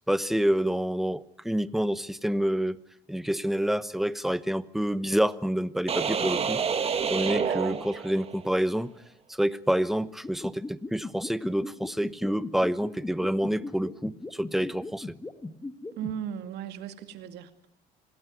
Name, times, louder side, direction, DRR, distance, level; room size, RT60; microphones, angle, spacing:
voice 1, 0.1-2.8 3.1-6.6 7.1-8.9 9.4-15.1, equal, ahead, 14 dB, 1.0 m, -28 dB
sound 1, 5.9-8.5, right 6 dB, 35° right, 1.8 m, -28 dB
voice 2, 7.3-7.8 15.9-17.7, right 9 dB, 80° right, 8 dB, 2.3 m, -37 dB
sound 2, 10.2-16.1, left 2 dB, 15° left, 1.7 m, -37 dB
27.0 x 18.5 x 9.6 m, 0.76 s
cardioid pair, 110°, 17 cm